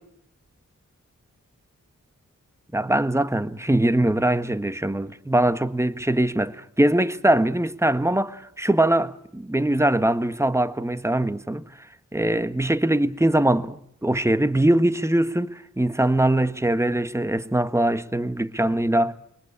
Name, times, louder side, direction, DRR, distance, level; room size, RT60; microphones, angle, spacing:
voice 1, 2.7-11.6 12.1-19.1, right 1 dB, 10° right, 1.4 m, -22 dB
23.5 x 19.0 x 8.6 m
cardioid pair, 40°, 31 cm